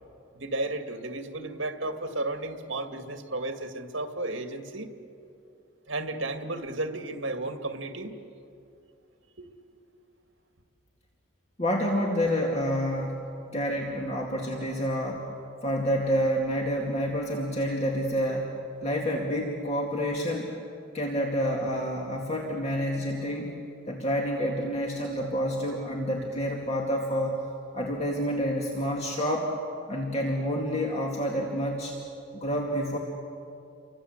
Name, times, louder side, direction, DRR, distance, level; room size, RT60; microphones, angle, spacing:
voice 1, 0.3-4.9 5.9-8.2 9.4-9.5, right 2 dB, 70° right, 6 dB, 2.2 m, -33 dB
voice 2, 11.6-15.3 15.6-18.6 18.8-20.5 20.9-23.6 23.9-27.4 27.7-29.6 29.9-32.0 32.3-33.0, equal, 35° left, -1 dB, 2.3 m, -28 dB
30.0 x 24.5 x 8.0 m, 2.6 s
head